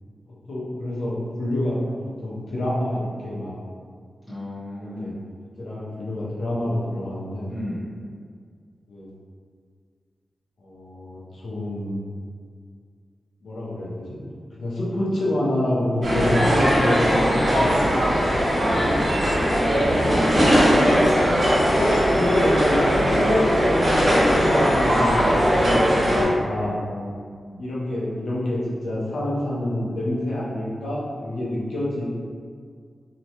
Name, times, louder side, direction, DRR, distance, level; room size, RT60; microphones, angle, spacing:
voice 1, 0.5-1.8 2.2-3.6 4.8-5.1 5.6-7.5 8.9-9.1 10.6-12.0 13.4-14.2 14.6-18.2 18.8-19.1 19.7-20.1 20.9-21.2 21.7-26.8 27.6-32.1, left 1 dB, 90° left, -7 dB, 0.7 m, -27 dB
voice 2, 4.3-5.2 7.5-7.9 18.5-18.8 26.6-27.7, left 1 dB, 5° left, -13 dB, 0.9 m, -35 dB
sound 1, 16.0-26.2, equal, 55° right, 1.0 m, -19 dB
2.9 x 2.1 x 2.8 m, 2.1 s
wide cardioid pair, 140°, 0 cm